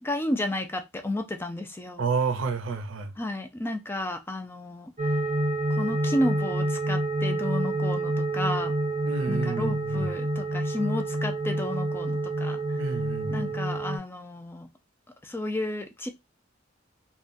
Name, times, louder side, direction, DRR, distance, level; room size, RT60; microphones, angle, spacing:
voice 1, 0.0-2.0 3.2-5.2 5.7-8.7 9.3-12.8 13.3-14.7 15.2-16.1, left 1 dB, 10° left, 0.4 m, -32 dB
voice 2, 2.0-3.1 9.0-10.1 12.8-13.5, right 4 dB, 85° right, 0.5 m, -30 dB
sound 1, 5.0-14.0, right 1 dB, 40° right, 0.6 m, -28 dB
3.5 x 2.2 x 2.6 m
head